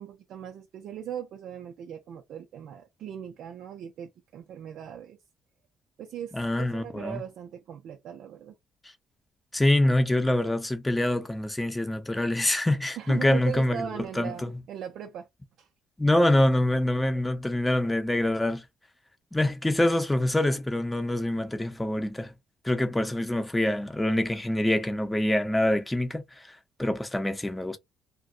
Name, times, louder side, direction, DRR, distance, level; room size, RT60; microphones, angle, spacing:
voice 1, 0.0-5.2 6.0-8.5 13.0-15.3 15.6-15.7, right 9 dB, 75° right, 0.5 m, -39 dB
voice 2, 6.3-7.2 9.5-13.9 14.2-14.6 16.0-18.6 19.3-22.3 22.6-26.2 26.8-27.8, left 1 dB, 10° left, 0.7 m, -25 dB
2.3 x 2.2 x 3.7 m
cardioid pair, 90°, 0 cm